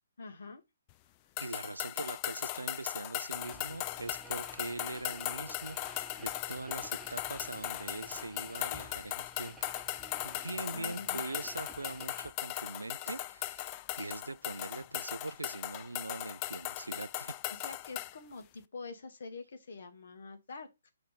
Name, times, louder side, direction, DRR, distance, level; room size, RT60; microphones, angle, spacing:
voice 1, 0.2-0.6 10.7-11.2 17.6-20.9, left 3 dB, 55° left, 1.4 m, -46 dB
sound 1, 1.4-18.2, left 15 dB, 25° left, 0.3 m, -38 dB
voice 2, 1.4-9.6 9.9-17.3, right 2 dB, 75° right, 0.3 m, -42 dB
sound 2, 3.3-12.3, right 1 dB, 5° right, 0.7 m, -53 dB
5.8 x 3.1 x 5.3 m
figure-of-eight pair, 130°, 0 cm